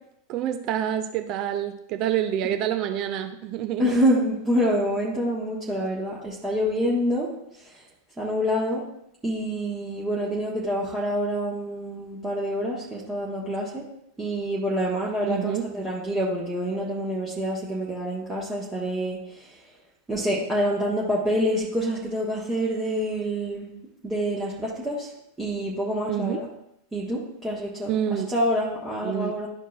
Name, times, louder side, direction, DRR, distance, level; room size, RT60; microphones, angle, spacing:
voice 1, 0.3-3.9 15.2-15.7 26.1-26.4 27.9-28.3 29.0-29.4, right 10 dB, 40° right, 7 dB, 0.5 m, -27 dB
voice 2, 3.8-7.3 7.6-7.8 8.2-8.8 9.2-13.8 14.2-19.6 20.1-23.7 24.0-25.1 25.4-26.5 26.9-29.5, equal, 15° right, -6 dB, 1.4 m, -27 dB
12.0 x 4.5 x 2.4 m, 0.79 s
figure-of-eight pair, 90°, 0 cm